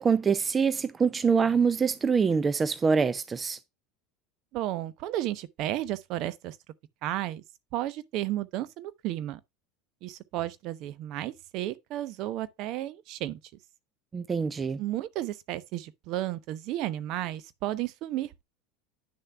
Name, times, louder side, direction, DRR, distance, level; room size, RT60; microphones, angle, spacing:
voice 1, 0.0-3.6 14.1-14.8, right 5 dB, 25° right, 0.5 m, -25 dB
voice 2, 4.5-6.6 7.0-7.4 7.7-9.4 10.0-13.4 14.8-18.4, right 14 dB, 50° right, 0.8 m, -33 dB
9.7 x 6.6 x 2.3 m
figure-of-eight pair, 75°, 0 cm